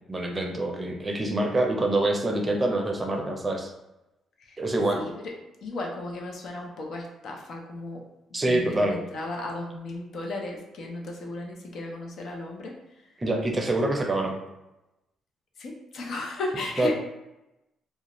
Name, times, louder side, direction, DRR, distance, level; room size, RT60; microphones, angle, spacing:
voice 1, 0.1-3.7 4.6-5.0 8.3-9.0 13.2-14.4 16.8-16.9, right 1 dB, 25° right, 2 dB, 0.5 m, -25 dB
voice 2, 5.6-8.0 8.4-12.7 15.6-16.9, left 2 dB, 65° left, 0 dB, 0.5 m, -35 dB
2.4 x 2.1 x 2.9 m, 0.95 s
cardioid pair, 90°, 0 cm